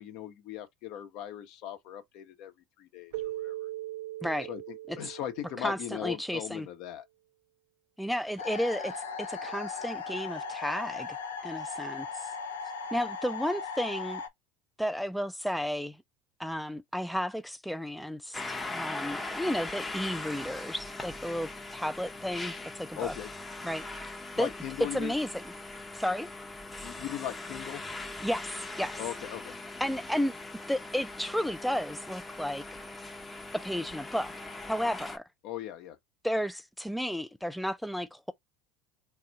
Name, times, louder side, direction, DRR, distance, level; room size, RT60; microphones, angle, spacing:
voice 1, 0.0-3.7 4.5-7.1 23.0-23.3 24.4-25.1 26.8-27.8 29.0-29.5 35.4-36.0, left 11 dB, 60° left, 0.9 m, -39 dB
Keyboard (musical), 3.1-6.3, right 15 dB, 70° right, 0.4 m, -40 dB
voice 2, 5.6-6.7 8.0-11.2 11.4-12.3 12.9-14.2 14.8-16.0 16.4-23.1 23.6-24.1 24.4-24.5 24.9-25.4 25.9-26.3 28.2-29.0 29.8-30.3 30.7-32.8 33.5-34.3 34.7-35.2 36.2-38.3, equal, ahead, 0.3 m, -33 dB
sound 1, 8.4-14.3, left 5 dB, 85° left, 0.6 m, -38 dB
sound 2, 18.3-35.2, left 2 dB, 15° left, 0.8 m, -40 dB
3.4 x 2.4 x 3.9 m
hypercardioid pair, 75°, 0 cm